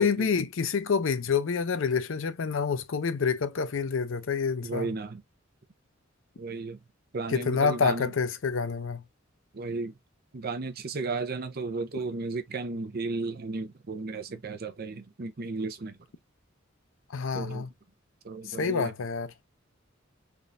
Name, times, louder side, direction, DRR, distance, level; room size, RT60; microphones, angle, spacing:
voice 1, 0.0-4.9 7.3-9.0 17.1-17.7 18.5-19.3, left 5 dB, 75° left, 0.5 m, -27 dB
voice 2, 4.6-5.2 6.4-6.8 7.1-8.1 9.5-9.9 10.3-16.0 17.3-17.7 18.2-18.9, right 3 dB, 50° right, 0.6 m, -34 dB
3.5 x 2.4 x 2.6 m
head